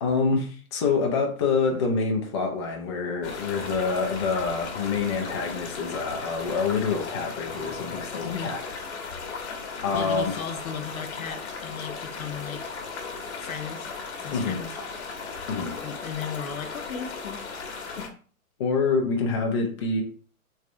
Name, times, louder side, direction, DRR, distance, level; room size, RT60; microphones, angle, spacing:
voice 1, 0.0-8.6 9.3-9.5 9.8-10.4 14.3-14.6 15.5-15.8 18.6-20.0, left 4 dB, 20° left, 0.4 m, -26 dB
sound 1, 3.2-18.1, left 4 dB, 50° left, 1.0 m, -36 dB
voice 2, 9.9-12.7 13.4-14.0 14.2-14.8 15.8-17.4 18.0-18.1, left 7 dB, 75° left, 0.8 m, -36 dB
3.3 x 3.2 x 2.5 m
figure-of-eight pair, 120°, 42 cm